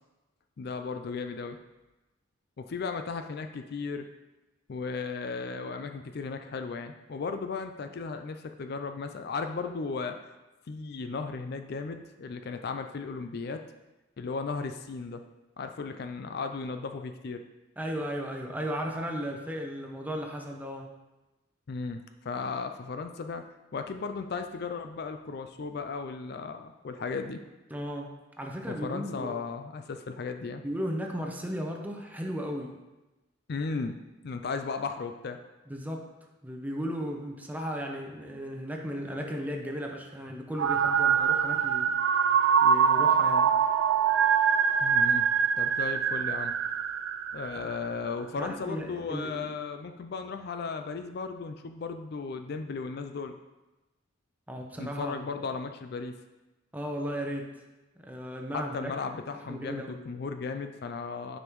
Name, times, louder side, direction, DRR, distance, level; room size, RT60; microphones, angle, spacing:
voice 1, 0.6-1.6 2.6-4.1 4.7-10.2 10.7-13.6 14.2-15.2 15.6-17.4 21.7-23.4 23.7-27.4 28.7-30.6 33.5-34.0 34.2-35.4 44.8-45.3 45.6-46.5 47.3-53.3 54.8-56.1 58.5-61.4, left 4 dB, 55° left, 7 dB, 0.4 m, -35 dB
voice 2, 17.8-20.9 27.7-29.3 30.6-32.7 35.7-36.1 36.4-42.0 42.6-43.5 48.4-49.5 54.5-55.2 56.7-57.5 58.0-58.9 59.5-60.0, equal, 10° right, 1 dB, 0.7 m, -35 dB
sound 1, 40.6-47.9, right 7 dB, 70° right, 0.3 m, -24 dB
9.7 x 5.2 x 3.1 m, 1.1 s
head